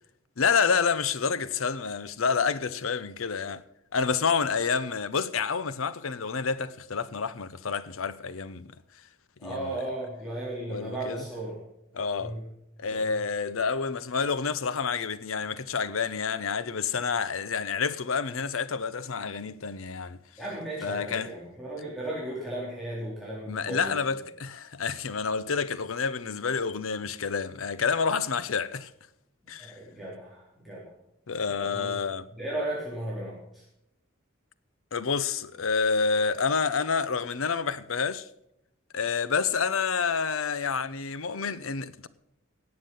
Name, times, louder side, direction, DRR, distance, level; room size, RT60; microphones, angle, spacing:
voice 1, 0.4-3.6 3.9-8.7 9.4-9.8 10.7-11.3 11.9-12.4 12.8-20.2 20.8-21.3 23.5-28.9 29.5-29.8 31.3-32.3 34.9-38.3 38.9-42.1, left 5 dB, 80° left, 0.7 m, -28 dB
voice 2, 9.4-11.6 12.2-12.4 12.9-13.1 20.4-24.0 29.6-30.9 31.6-31.9 32.4-33.6, right 1 dB, ahead, 3.5 m, -35 dB
17.5 x 7.5 x 5.4 m
head